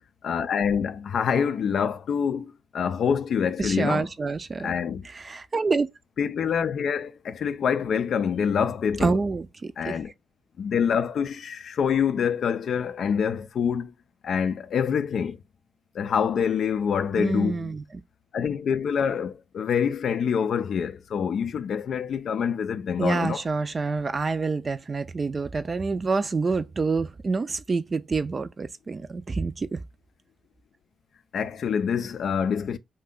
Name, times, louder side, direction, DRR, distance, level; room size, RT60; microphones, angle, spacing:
voice 1, 0.2-4.1 4.6-5.1 6.2-9.2 9.8-10.1 10.6-13.9 14.2-15.4 15.9-17.7 18.3-23.4 31.3-32.8, left 7 dB, 70° left, 0.3 m, -26 dB
voice 2, 3.6-4.7 5.0-5.9 9.0-10.0 17.2-17.8 23.0-29.8, right 4 dB, 40° right, 0.4 m, -27 dB
2.5 x 2.2 x 3.5 m
supercardioid pair, 50°, 0 cm